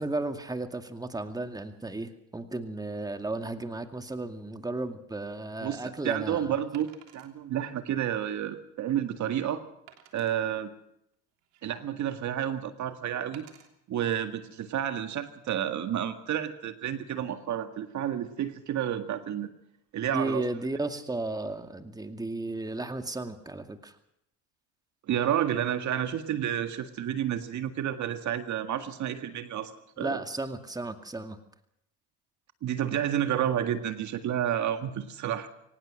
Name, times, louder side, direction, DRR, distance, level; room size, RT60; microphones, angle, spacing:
voice 1, 0.0-6.5 20.1-23.9 30.0-31.4, right 2 dB, 10° right, 7 dB, 2.2 m, -34 dB
Wood, 5.3-5.4 6.7-7.3 8.0-8.1 8.6-8.7 9.9-10.4 11.1-11.9 13.3-13.7 14.4-14.6, right 11 dB, 75° right, 3.3 m, -54 dB
voice 2, 5.6-9.6 10.1-10.7 11.6-13.5 13.9-19.5 19.9-20.4 25.1-29.7 30.0-30.2 32.6-35.5, right 10 dB, 50° right, 8 dB, 1.9 m, -30 dB
23.5 x 19.0 x 6.4 m, 0.77 s
hypercardioid pair, 75°, 36 cm